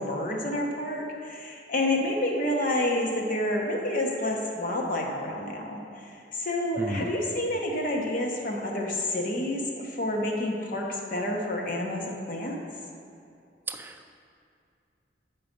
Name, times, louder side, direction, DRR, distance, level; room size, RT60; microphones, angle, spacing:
voice 1, 0.0-5.8 6.3-12.6, left 1 dB, 50° left, 0 dB, 1.1 m, -29 dB
voice 2, 6.8-7.1 13.7-14.1, right 1 dB, 10° right, 5 dB, 0.4 m, -33 dB
8.0 x 5.8 x 5.2 m, 2.5 s
head